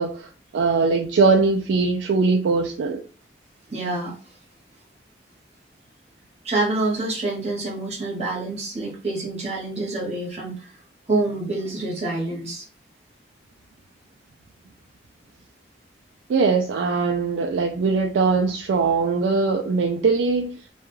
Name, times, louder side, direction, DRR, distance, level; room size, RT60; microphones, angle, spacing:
voice 1, 0.0-3.0 16.3-20.5, right 4 dB, 85° right, 0.3 m, -21 dB
voice 2, 3.7-4.1 6.4-10.7 11.1-12.7, right 2 dB, 35° right, 0.9 m, -27 dB
2.3 x 2.2 x 3.0 m
head